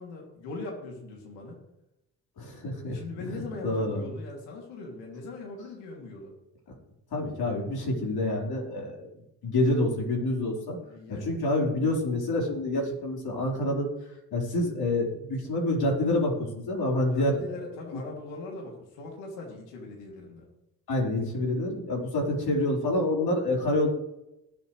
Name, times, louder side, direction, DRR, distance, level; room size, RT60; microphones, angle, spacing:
voice 1, 0.0-1.6 2.9-6.3 10.8-11.4 17.1-20.5, left 3 dB, 85° left, 0 dB, 2.9 m, -40 dB
voice 2, 2.4-4.1 7.1-9.1 9.4-10.8 11.1-13.9 14.3-18.0 20.9-23.9, left 1 dB, 60° left, -1 dB, 4.5 m, -27 dB
20.5 x 8.1 x 3.3 m, 0.90 s
hypercardioid pair, 55°, 42 cm